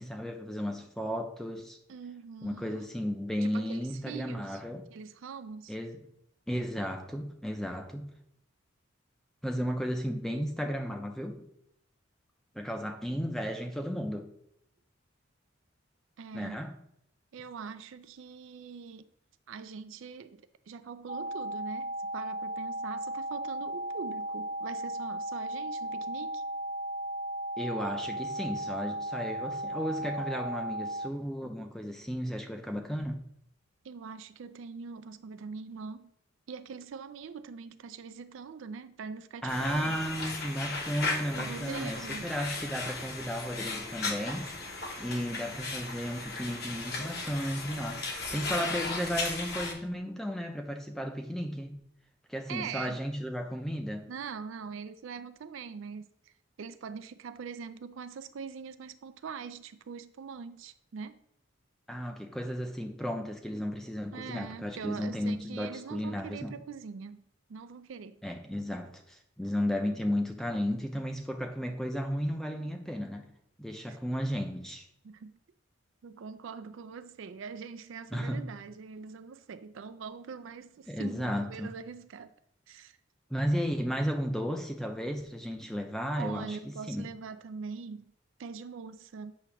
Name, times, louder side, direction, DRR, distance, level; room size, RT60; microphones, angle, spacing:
voice 1, 0.0-1.8 2.4-4.8 5.7-6.0 6.5-8.1 9.4-11.5 12.5-14.3 16.3-16.7 27.6-33.2 39.4-44.5 45.0-51.8 52.3-54.1 61.9-66.6 68.2-73.3 73.6-74.9 78.1-78.4 80.9-81.7 83.3-87.1, equal, ahead, 0.5 m, -34 dB
voice 2, 1.9-2.9 3.4-4.6 4.9-5.7 16.2-16.6 17.3-19.1 19.5-26.4 33.8-36.1 36.5-40.0 41.3-42.3 52.5-53.0 54.1-61.2 64.1-67.2 67.5-68.2 73.9-74.0 75.0-75.4 76.0-82.3 82.7-83.0 86.2-88.1 88.4-89.3, right 5 dB, 70° right, 0.4 m, -43 dB
sound 1, 21.1-31.1, right 1 dB, 40° right, 0.7 m, -36 dB
sound 2, 39.5-49.7, left 3 dB, 50° left, 1.1 m, -36 dB
8.3 x 2.9 x 5.8 m
head